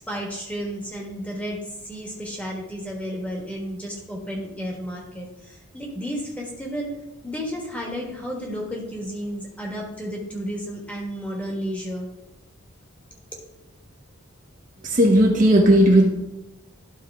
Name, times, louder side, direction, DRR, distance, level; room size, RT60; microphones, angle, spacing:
voice 1, 0.1-6.9 7.2-12.1, equal, 5° left, -2 dB, 1.5 m, -32 dB
voice 2, 14.9-16.1, right 1 dB, 40° right, 0 dB, 1.0 m, -15 dB
11.5 x 4.4 x 3.5 m, 0.98 s
head